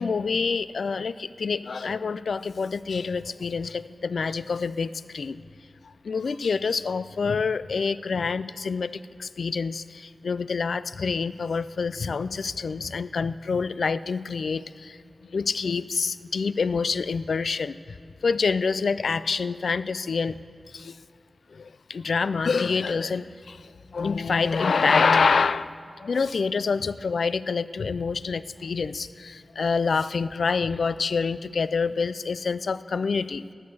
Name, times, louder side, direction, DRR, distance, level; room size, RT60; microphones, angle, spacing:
voice 1, 0.0-5.4 6.0-15.0 15.3-17.8 18.2-20.4 20.7-21.0 21.5-33.4, left 5 dB, 90° left, 15 dB, 0.3 m, -27 dB
19.0 x 6.6 x 6.8 m, 2.6 s
wide cardioid pair, 85°, 0 cm